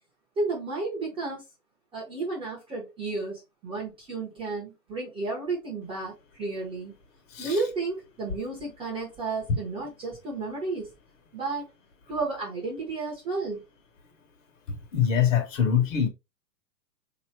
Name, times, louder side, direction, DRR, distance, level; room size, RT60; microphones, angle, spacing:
voice 1, 0.4-1.4 1.9-6.9 7.4-10.9 11.3-11.7 12.1-13.6, right 3 dB, 10° right, 0.7 m, -32 dB
voice 2, 14.7-16.1, left 8 dB, 45° left, 1.3 m, -24 dB
3.8 x 2.9 x 3.1 m
hypercardioid pair, 145°, 50 cm